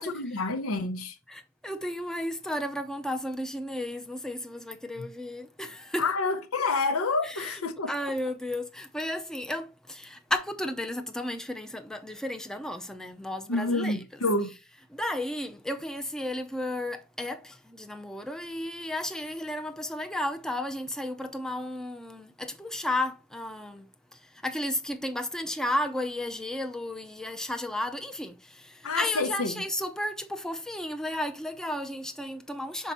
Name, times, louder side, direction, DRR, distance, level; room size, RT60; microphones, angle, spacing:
voice 1, 0.0-1.2 5.0-5.1 6.0-7.9 13.5-14.6 28.8-29.6, left 3 dB, 80° left, 0.9 m, -28 dB
voice 2, 1.3-6.1 7.2-7.6 7.9-14.0 14.9-32.9, left 1 dB, 5° left, 0.6 m, -33 dB
5.7 x 4.5 x 4.1 m
head